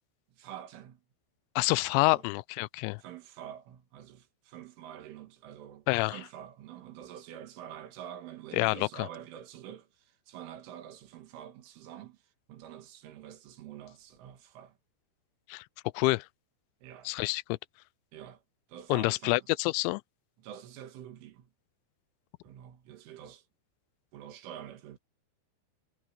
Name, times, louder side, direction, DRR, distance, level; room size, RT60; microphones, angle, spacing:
voice 1, 0.3-1.0 2.1-2.2 3.0-12.2 12.5-14.8 16.8-17.1 18.1-18.4 18.7-19.5 20.4-21.5 22.4-23.4 24.1-25.0, right 10 dB, 85° right, 4.5 m, -47 dB
voice 2, 1.6-3.0 5.9-6.2 8.5-8.9 15.5-15.6 15.9-16.3 17.1-17.6 18.9-20.0, left 24 dB, 85° left, 2.8 m, -27 dB
omnidirectional pair, 5.5 m